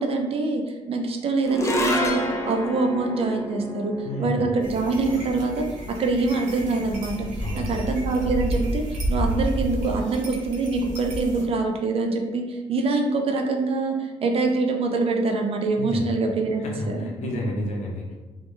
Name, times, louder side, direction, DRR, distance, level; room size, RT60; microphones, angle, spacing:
voice 1, 0.0-7.3 7.5-17.1, right 3 dB, 50° right, 3 dB, 0.4 m, -25 dB
sound 1, 1.5-7.9, left 1 dB, 20° left, 0.4 m, -31 dB
voice 2, 4.0-4.5 7.4-7.8 15.8-16.1 16.6-18.1, equal, 60° left, -1 dB, 0.6 m, -30 dB
sound 2, 4.6-11.4, equal, 75° right, 0.7 m, -30 dB
2.1 x 2.1 x 2.9 m, 1.2 s
cardioid pair, 80°, 13 cm